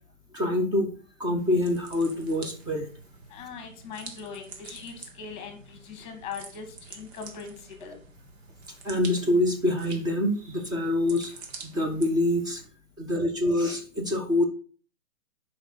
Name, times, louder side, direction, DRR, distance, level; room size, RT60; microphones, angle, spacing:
voice 1, 0.3-0.9 1.2-2.9 8.8-11.3 11.6-12.6 13.0-14.4, left 1 dB, 10° right, 3 dB, 1.2 m, -25 dB
sound 1, 1.4-12.7, right 4 dB, 50° right, 1.6 m, -47 dB
voice 2, 3.3-5.6 5.9-6.7 6.9-7.5 7.8-7.9, left 6 dB, 15° left, 5 dB, 1.9 m, -40 dB
11.0 x 5.0 x 4.0 m, 0.41 s
figure-of-eight pair, 125°, 41 cm